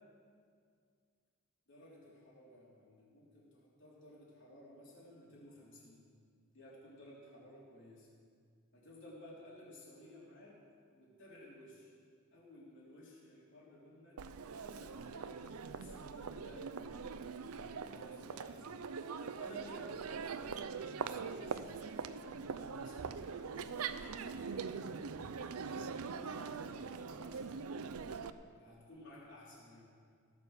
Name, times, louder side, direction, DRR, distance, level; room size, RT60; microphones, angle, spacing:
voice 1, 1.7-6.0 6.5-8.1 8.7-10.6 10.9-12.0 12.3-14.2 14.5-17.1 17.6-18.9 19.3-22.1 22.6-25.0 25.6-28.0 28.6-29.8, left 1 dB, 55° left, -5 dB, 3.8 m, -56 dB
Crowd, 14.2-28.3, right 5 dB, 80° right, 0.5 m, -42 dB
17.0 x 7.0 x 6.7 m, 2.1 s
head